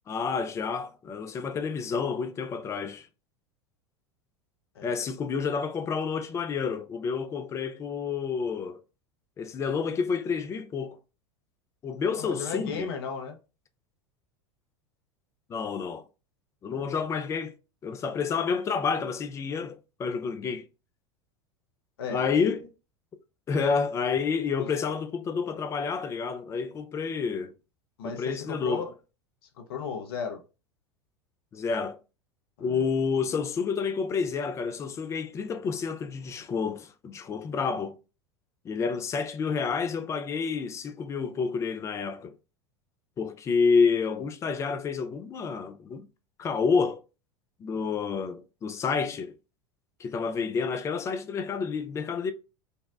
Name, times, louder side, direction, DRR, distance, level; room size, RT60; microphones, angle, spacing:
voice 1, 0.1-3.1 4.8-8.8 9.4-11.0 11.8-12.9 15.5-16.1 16.6-17.5 17.8-20.6 22.1-22.7 23.5-27.5 28.0-28.9 31.5-32.0 32.6-38.0 38.6-42.3 43.2-46.1 46.4-47.0 47.6-49.3 50.0-52.3, left 5 dB, 20° left, 0.4 m, -29 dB
voice 2, 12.2-13.4 16.7-16.8 22.0-22.2 28.0-28.9 29.7-30.4 32.6-32.8, left 6 dB, 60° left, 0.7 m, -35 dB
3.9 x 2.1 x 2.3 m
figure-of-eight pair, 80°, 14 cm